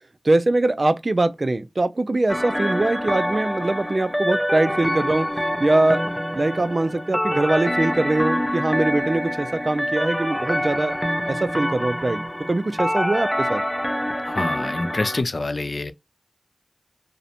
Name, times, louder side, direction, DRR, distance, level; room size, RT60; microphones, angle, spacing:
voice 1, 0.2-5.3 5.6-6.1 6.3-11.0 11.3-12.2 12.5-13.6, right 2 dB, 50° right, 0.4 m, -22 dB
sound 1, 2.3-15.2, equal, 5° left, 0.5 m, -26 dB
voice 2, 14.2-15.9, left 2 dB, 65° left, 0.3 m, -26 dB
2.5 x 2.1 x 2.7 m
cardioid pair, 40°, 0 cm